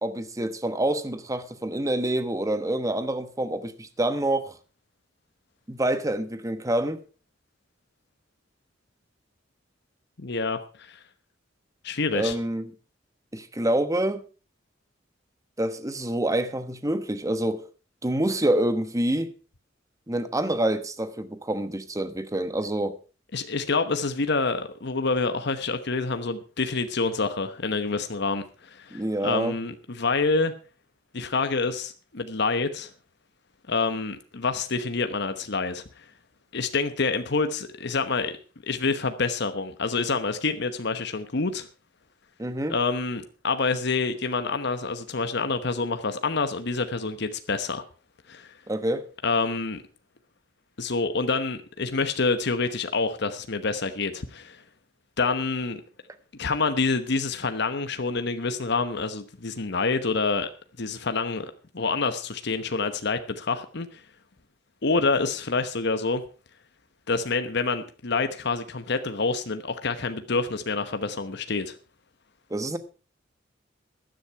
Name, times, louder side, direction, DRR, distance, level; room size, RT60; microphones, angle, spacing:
voice 1, 0.0-4.5 5.7-7.0 12.1-12.7 13.3-14.2 15.6-17.6 18.0-19.3 20.1-23.0 28.9-29.6 42.4-42.7 48.7-49.0 72.5-72.8, right 1 dB, 15° right, 1.0 m, -27 dB
voice 2, 10.2-11.0 11.8-12.3 23.3-30.5 31.1-32.9 33.7-36.0 36.5-38.3 38.6-41.7 42.7-47.8 48.3-48.5 49.2-49.8 50.8-54.6 55.2-55.8 56.4-60.5 60.8-61.5 61.7-64.0 64.8-66.2 67.1-71.8, left 4 dB, 60° left, 1.1 m, -27 dB
15.5 x 10.5 x 4.6 m
head